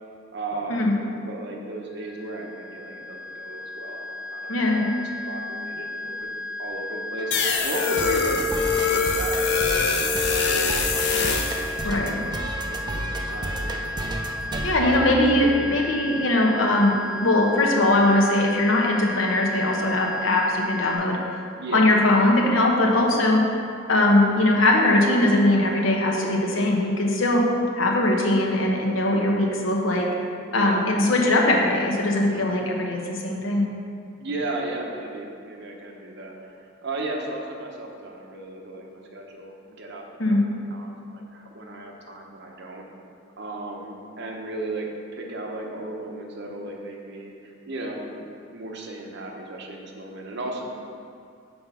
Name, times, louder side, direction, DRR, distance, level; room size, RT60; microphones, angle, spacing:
voice 1, 0.3-4.9 5.2-12.3 12.7-14.0 14.8-15.3 21.6-21.9 22.2-22.3 30.4-30.8 34.2-42.8 43.4-50.7, right 2 dB, 60° right, 0 dB, 0.8 m, -35 dB
sound 1, 1.9-21.0, left 2 dB, 20° left, 1.2 m, -34 dB
voice 2, 4.5-4.8 11.8-12.2 14.6-17.0 17.2-21.5 21.7-23.4 23.9-27.4 27.8-30.1 30.5-33.7 40.2-40.4, left 1 dB, 85° left, 0 dB, 0.9 m, -20 dB
sound 2, 7.2-15.8, right 1 dB, 20° right, 0.4 m, -33 dB
sound 3, 7.3-11.7, left 5 dB, 60° left, 0.6 m, -23 dB
5.5 x 4.3 x 5.6 m, 2.4 s
head